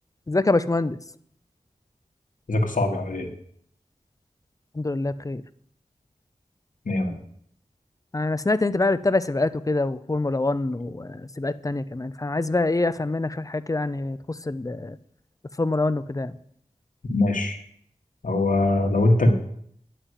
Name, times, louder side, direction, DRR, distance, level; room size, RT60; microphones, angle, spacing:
voice 1, 0.3-1.0 4.7-5.4 8.1-15.0 15.6-16.4, left 2 dB, 25° left, 15 dB, 0.5 m, -25 dB
voice 2, 2.5-3.3 6.8-7.2 17.1-17.6 18.2-19.3, left 2 dB, 80° left, 4 dB, 1.6 m, -22 dB
9.6 x 6.0 x 8.2 m, 0.67 s
wide cardioid pair, 70°, 14 cm